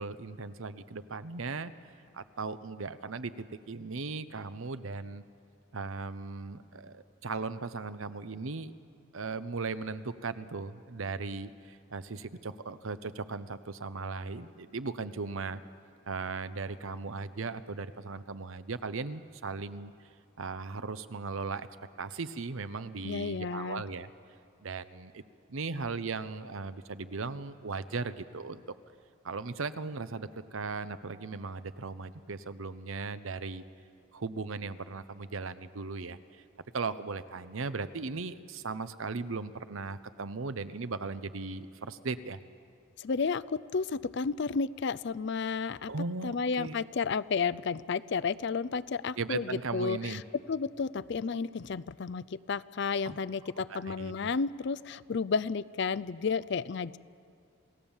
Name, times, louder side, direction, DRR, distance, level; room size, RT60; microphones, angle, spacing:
voice 1, 0.0-1.7 2.1-5.2 5.7-8.7 9.1-15.6 16.1-19.9 20.4-21.7 22.0-24.1 24.6-25.2 25.5-28.6 29.2-33.6 34.1-36.4 36.7-42.4 45.9-46.8 49.2-50.2 53.1-53.2 53.7-54.1, right 4 dB, 70° right, 13 dB, 0.8 m, -37 dB
voice 2, 23.0-23.8 43.0-45.9 46.2-50.2 50.5-57.0, left 5 dB, 55° left, 17 dB, 0.4 m, -32 dB
28.0 x 17.0 x 7.2 m, 2.3 s
head